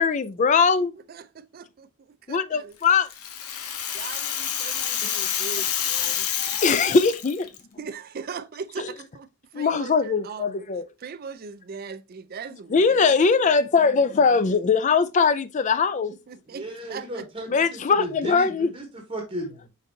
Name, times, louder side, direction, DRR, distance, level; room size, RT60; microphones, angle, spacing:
voice 1, 0.0-0.9 2.3-3.1 4.8-5.1 6.0-6.1 6.3-7.5 8.8-8.9 9.5-10.8 12.7-16.1 17.5-18.7, left 5 dB, 35° left, 0.3 m, -21 dB
voice 2, 1.1-1.9 2.3-2.7 3.9-6.3 7.8-9.3 9.5-10.5 11.0-13.1 16.3-17.3, right 5 dB, 40° right, 0.4 m, -39 dB
Rattle (instrument), 2.8-7.6, left 9 dB, 80° left, 0.7 m, -28 dB
voice 3, 16.5-19.7, right 1 dB, 25° right, 0.9 m, -35 dB
5.2 x 3.9 x 2.6 m
head